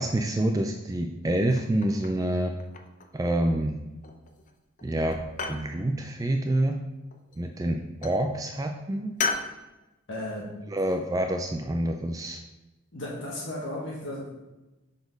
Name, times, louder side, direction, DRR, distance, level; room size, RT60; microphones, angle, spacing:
voice 1, 0.0-2.5 3.1-3.8 4.8-6.8 7.4-9.1 10.7-12.4, right 1 dB, 15° right, 4 dB, 0.3 m, -27 dB
sound 1, 1.5-2.2 2.6-3.2 4.0-4.5 4.8-5.7 7.1-7.6 8.0-8.2 9.2-9.5, left 4 dB, 35° left, 0.6 m, -34 dB
voice 2, 10.1-10.5 10.8-11.0 12.9-14.3, left 1 dB, 60° left, -4 dB, 1.4 m, -35 dB
6.9 x 4.1 x 5.2 m, 1.0 s
head